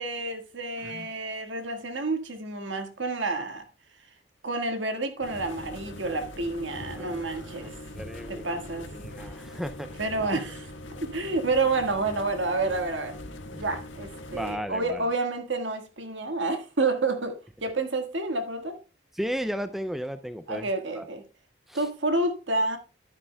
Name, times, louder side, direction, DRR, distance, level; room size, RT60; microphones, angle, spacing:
voice 1, 0.0-3.6 4.4-7.7 8.3-8.9 10.0-10.7 11.0-13.2 13.5-18.8 20.5-21.2 21.7-22.8, right 3 dB, 70° right, 1.6 m, -29 dB
sound 1, 5.2-14.6, left 1 dB, 75° left, 1.5 m, -42 dB
voice 2, 6.9-7.7 8.0-8.5 8.9-9.9 13.5-13.6 14.3-15.0 19.1-20.7 21.0-21.1 21.7-21.9, equal, ahead, 0.3 m, -35 dB
11.5 x 9.9 x 2.2 m
head